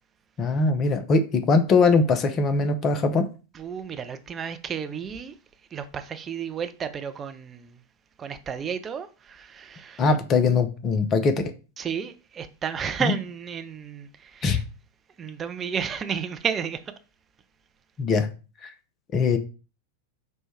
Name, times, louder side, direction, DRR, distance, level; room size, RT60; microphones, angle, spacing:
voice 1, 0.4-3.3 10.0-11.3 13.0-13.1 14.4-14.6 18.0-18.3 18.6-18.7 19.1-19.4, left 4 dB, 30° left, 0.6 m, -21 dB
voice 2, 3.5-5.3 5.7-7.8 8.2-10.2 11.8-14.6 15.2-16.8, right 7 dB, 25° right, 0.5 m, -32 dB
4.3 x 2.2 x 4.5 m
figure-of-eight pair, 90°, 0 cm